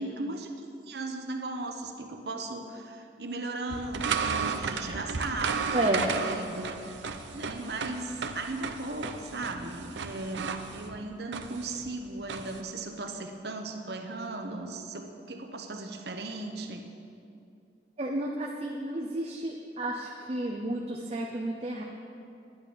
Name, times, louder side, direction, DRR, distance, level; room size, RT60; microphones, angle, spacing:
voice 1, 0.0-7.0 7.3-16.9, right 2 dB, 70° right, 4 dB, 1.0 m, -37 dB
sound 1, 3.7-12.6, right 5 dB, 90° right, 0.7 m, -34 dB
voice 2, 5.7-6.1 18.0-21.8, right 1 dB, 35° right, -1 dB, 0.8 m, -31 dB
10.5 x 10.5 x 5.3 m, 2.6 s
head